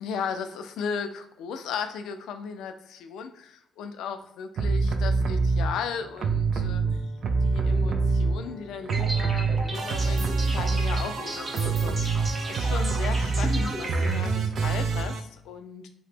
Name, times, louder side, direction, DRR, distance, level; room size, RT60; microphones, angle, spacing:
voice 1, 0.0-6.8 7.4-15.9, left 6 dB, 85° left, 7 dB, 0.3 m, -36 dB
sound 1, 4.6-5.7 6.2-8.6 8.9-15.2, right 4 dB, 60° right, 0.3 m, -25 dB
sound 2, 4.9-10.2, left 2 dB, 35° left, 0.6 m, -45 dB
sound 3, 8.9-14.2, right 1 dB, 25° right, 0.7 m, -35 dB
2.8 x 2.1 x 3.3 m, 0.75 s
cardioid pair, 90°, 0 cm